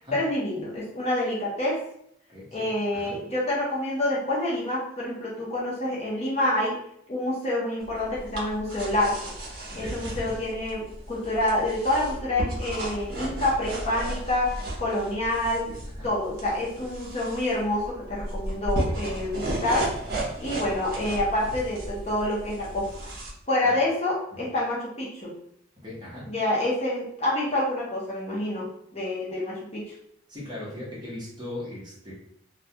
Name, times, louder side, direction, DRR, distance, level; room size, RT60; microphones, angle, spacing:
voice 1, 0.1-1.8 2.5-6.7 7.1-9.3 9.8-15.7 16.0-19.9 20.4-23.1 23.5-25.3 26.3-29.9, left 1 dB, 35° left, -5 dB, 0.6 m, -27 dB
voice 2, 2.3-2.7 2.9-3.2 9.8-10.3 15.7-16.1 20.2-20.3 23.6-23.8 25.8-26.3 30.3-32.1, left 1 dB, 25° right, -6 dB, 0.8 m, -39 dB
sound 1, 7.8-23.3, right 1 dB, 50° right, 0.6 m, -35 dB
2.2 x 2.2 x 2.8 m, 0.71 s
head